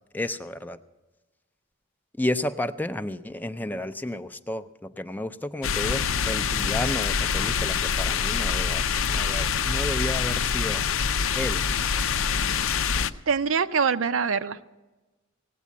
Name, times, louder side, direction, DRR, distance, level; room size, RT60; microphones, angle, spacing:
voice 1, 0.1-0.8 2.2-10.9 11.3-11.6, left 1 dB, 10° left, 9 dB, 0.4 m, -32 dB
sound 1, 5.6-13.1, left 6 dB, 80° left, 0.5 m, -25 dB
voice 2, 13.3-14.7, right 6 dB, 70° right, 11 dB, 0.6 m, -24 dB
18.0 x 8.4 x 8.3 m, 1.2 s
head